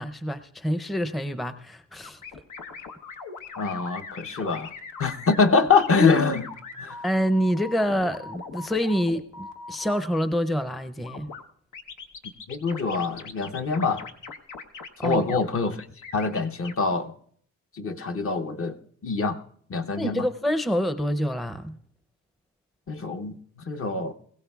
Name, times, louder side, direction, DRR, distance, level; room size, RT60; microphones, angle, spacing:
voice 1, 0.0-2.2 7.0-11.3 15.0-15.2 20.0-21.8, equal, ahead, 0.5 m, -27 dB
sound 1, 2.0-10.0 11.0-11.4 11.7-15.4 16.0-16.7, left 4 dB, 90° left, 1.0 m, -40 dB
voice 2, 3.6-4.7 5.0-6.5 6.8-7.0 12.5-14.0 15.0-15.9 16.1-17.1 17.8-18.8 19.0-19.4 19.7-20.2 22.9-23.3 23.6-24.1, left 4 dB, 50° left, 0.8 m, -24 dB
21.0 x 16.0 x 2.3 m
cardioid pair, 90°, 30 cm